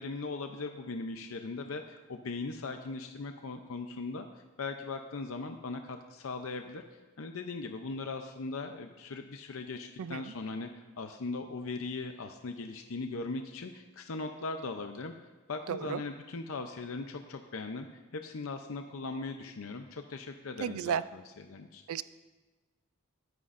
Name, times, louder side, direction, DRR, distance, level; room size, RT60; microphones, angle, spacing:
voice 1, 0.0-4.3 4.6-15.1 15.5-17.9 18.1-21.8, left 3 dB, 70° left, 6 dB, 0.6 m, -39 dB
voice 2, 10.0-10.3 15.7-16.0 20.6-21.0 21.9-22.0, right 8 dB, 85° right, 15 dB, 0.4 m, -33 dB
21.5 x 9.5 x 2.6 m, 1.3 s
head